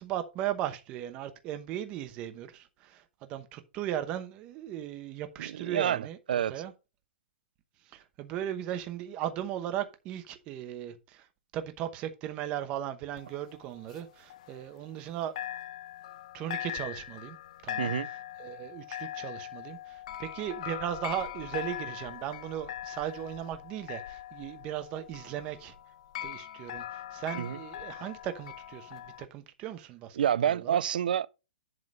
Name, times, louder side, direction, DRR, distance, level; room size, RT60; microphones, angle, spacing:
voice 1, 0.0-6.2 6.5-6.7 7.9-11.3 11.5-15.3 16.3-17.4 17.6-17.9 18.4-25.7 26.2-30.2 30.4-30.8, right 11 dB, 20° right, 0.9 m, -37 dB
voice 2, 5.4-6.6 17.8-18.1 27.3-27.6 30.2-31.3, right 9 dB, 55° right, 0.5 m, -28 dB
sound 1, 13.2-15.1 15.4-29.3, left 12 dB, 40° left, 0.6 m, -41 dB
11.0 x 3.8 x 5.3 m
hypercardioid pair, 175°, 6 cm